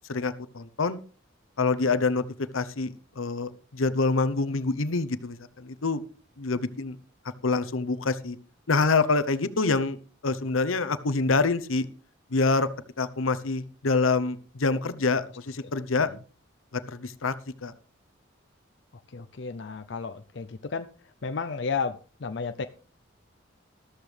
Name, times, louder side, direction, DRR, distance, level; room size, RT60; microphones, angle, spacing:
voice 1, 0.1-1.0 1.6-2.2 2.5-6.0 6.4-7.0 7.4-8.4 8.7-10.0 10.2-11.9 12.3-12.7 13.0-16.1 16.7-17.3 17.6-17.7, left 3 dB, 85° left, 14 dB, 0.9 m, -26 dB
voice 2, 19.1-20.9 21.2-22.7, left 5 dB, 60° left, 8 dB, 0.6 m, -32 dB
13.5 x 13.0 x 3.4 m, 0.38 s
head